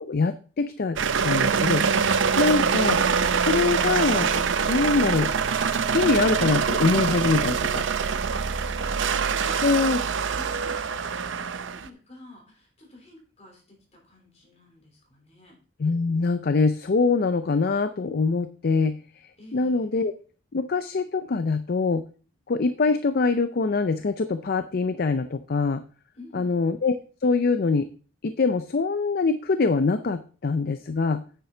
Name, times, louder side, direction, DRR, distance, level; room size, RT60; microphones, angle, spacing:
voice 1, 0.1-1.0 1.2-1.8 2.4-3.0 3.4-4.3 4.7-5.3 5.9-7.9 9.6-10.0 15.8-20.1 20.5-22.0 22.5-25.8 26.3-27.9 28.2-31.2, left 4 dB, 50° left, 11 dB, 0.5 m, -24 dB
sound 1, 1.0-11.9, right 6 dB, 65° right, 0.6 m, -24 dB
voice 2, 8.3-15.6 19.4-19.9 26.1-26.7, left 1 dB, 35° left, 1 dB, 3.5 m, -49 dB
9.2 x 7.1 x 3.8 m, 0.38 s
head